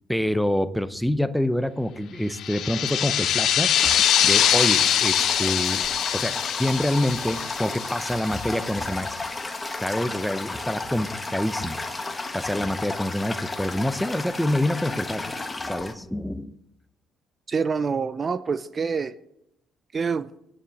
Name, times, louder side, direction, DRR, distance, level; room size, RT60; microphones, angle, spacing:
voice 1, 0.1-3.9 4.2-5.8 6.1-9.3 9.8-11.8 12.3-15.4 15.6-16.5, left 1 dB, 5° left, 13 dB, 0.7 m, -26 dB
sound 1, 2.4-8.7, left 10 dB, 65° left, 0.9 m, -23 dB
Toilet flush, 3.7-15.9, left 2 dB, 20° left, 1.4 m, -33 dB
voice 2, 17.5-19.1 19.9-20.3, right 5 dB, 35° right, 16 dB, 0.5 m, -26 dB
9.7 x 8.7 x 7.6 m, 0.78 s
cardioid pair, 85°, 0 cm